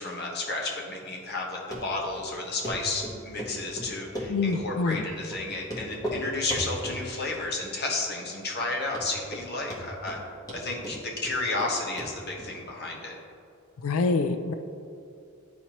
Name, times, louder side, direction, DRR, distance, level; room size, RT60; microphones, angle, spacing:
voice 1, 0.0-10.2 10.5-13.2, left 2 dB, 50° left, -2 dB, 1.2 m, -32 dB
Run, 1.7-1.8 2.2-2.3 2.6-2.8 3.0-3.5 3.8-4.6 4.9-5.0 5.3-5.4 5.7-6.2 6.5-7.0 7.3-7.8 8.1-8.2 8.6-8.7 8.9-9.4 9.7-10.2 10.5-11.7 12.0-12.1 12.4-12.5, equal, 15° left, 1.1 m, -35 dB
voice 2, 4.3-5.0 13.8-14.5, left 3 dB, 70° left, 8 dB, 0.4 m, -26 dB
11.0 x 4.3 x 2.9 m, 2.5 s
head